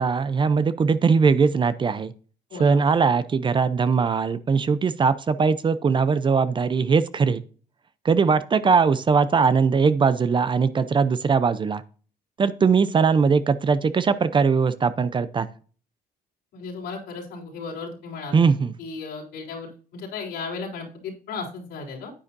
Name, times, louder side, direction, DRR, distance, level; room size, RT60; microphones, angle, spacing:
voice 1, 0.0-2.1 2.6-7.4 8.0-11.8 12.4-15.5 18.3-18.7, right 5 dB, 30° right, 0.6 m, -20 dB
voice 2, 16.5-18.4 18.8-22.1, left 4 dB, 80° left, 3.8 m, -35 dB
9.8 x 8.7 x 2.7 m
cardioid pair, 110°, 17 cm